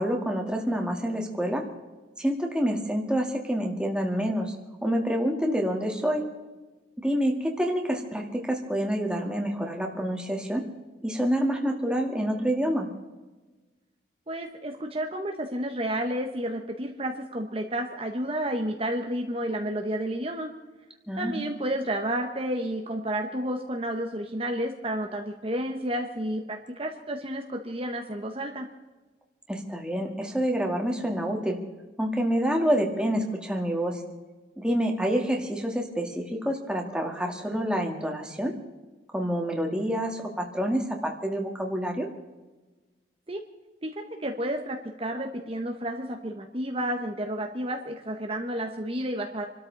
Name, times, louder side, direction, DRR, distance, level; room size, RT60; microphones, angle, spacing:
voice 1, 0.0-1.6 2.2-4.5 4.8-6.2 7.0-10.6 11.0-12.9 21.1-21.4 29.5-31.6 32.0-34.0 34.6-38.5 39.1-42.1, equal, 5° right, 1 dB, 2.1 m, -27 dB
voice 2, 14.3-20.5 21.2-28.7 43.3-43.4 43.8-49.5, right 1 dB, 30° right, 3 dB, 1.2 m, -31 dB
27.5 x 13.0 x 4.1 m, 1.2 s
head